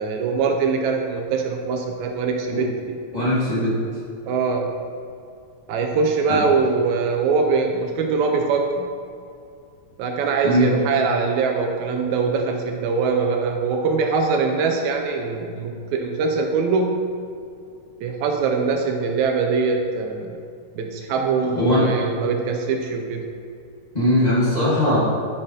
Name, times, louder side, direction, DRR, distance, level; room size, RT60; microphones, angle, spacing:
voice 1, 0.0-3.0 4.3-4.7 5.7-8.9 10.0-17.0 18.0-20.4 20.8-23.2, right 4 dB, 80° right, 3 dB, 1.8 m, -22 dB
voice 2, 3.1-3.8 6.3-6.4 10.4-10.7 21.5-21.8 23.9-25.0, left 1 dB, 45° left, -9 dB, 0.5 m, -19 dB
9.9 x 6.6 x 2.8 m, 2.4 s
omnidirectional pair, 3.5 m